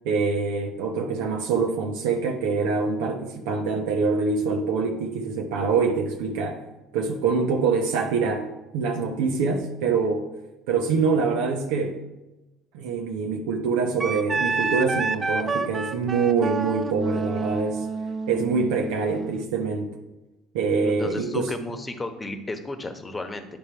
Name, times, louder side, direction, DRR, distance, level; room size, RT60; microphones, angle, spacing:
voice 1, 0.0-6.6 6.9-8.5 8.7-10.3 10.7-12.0 12.7-17.9 18.3-19.9 20.5-21.5, right 4 dB, 80° right, 2 dB, 0.8 m, -25 dB
Wind instrument woodwind instrument, 14.0-19.4, right 4 dB, 30° right, 0.5 m, -29 dB
voice 2, 20.8-23.5, left 2 dB, 20° left, 7 dB, 1.1 m, -33 dB
10.0 x 3.5 x 4.5 m, 1.0 s
hypercardioid pair, 75°, 0 cm